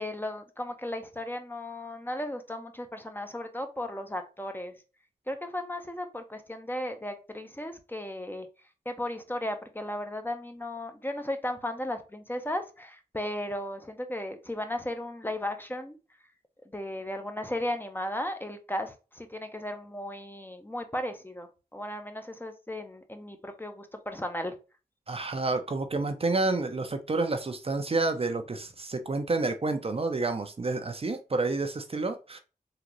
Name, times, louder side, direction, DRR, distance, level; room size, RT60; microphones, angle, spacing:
voice 1, 0.0-4.7 5.3-8.5 8.9-16.0 16.7-24.6, left 1 dB, 15° left, 0.7 m, -35 dB
voice 2, 25.1-32.4, right 3 dB, 40° right, 0.6 m, -29 dB
3.8 x 2.4 x 3.0 m
cardioid pair, 45°, 16 cm